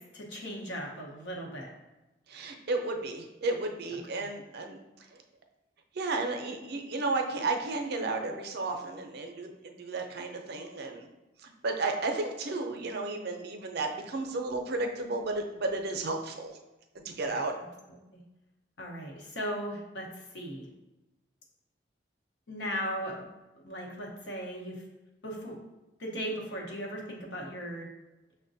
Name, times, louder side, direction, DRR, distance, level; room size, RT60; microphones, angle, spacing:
voice 1, 0.1-1.7 4.1-4.3 17.3-17.7 18.1-18.2 18.8-20.7 22.5-23.3 23.6-24.8 25.2-25.6 26.0-27.9, equal, 85° left, -1 dB, 0.9 m, -37 dB
voice 2, 2.3-4.8 5.1-5.2 5.9-11.1 11.4-16.5 17.0-17.5, right 3 dB, 60° right, 4 dB, 0.5 m, -33 dB
6.1 x 2.1 x 2.6 m, 1.0 s
head